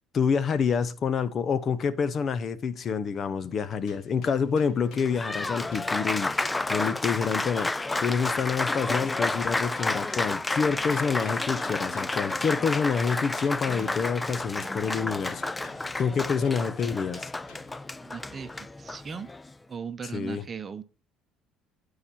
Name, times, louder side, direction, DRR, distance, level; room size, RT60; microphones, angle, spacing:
voice 1, 0.1-7.7 8.0-15.4 16.0-17.3 20.1-20.4, left 6 dB, 45° left, 0.7 m, -27 dB
sound 1, 3.9-7.0 7.2-10.5 10.9-14.2 14.6-17.9, left 5 dB, 65° left, 2.0 m, -53 dB
Applause, 4.8-19.5, left 2 dB, 15° left, 0.4 m, -31 dB
voice 2, 18.0-19.3 19.7-20.8, right 6 dB, 35° right, 0.9 m, -38 dB
10.5 x 4.8 x 4.3 m
supercardioid pair, 90°, 0 cm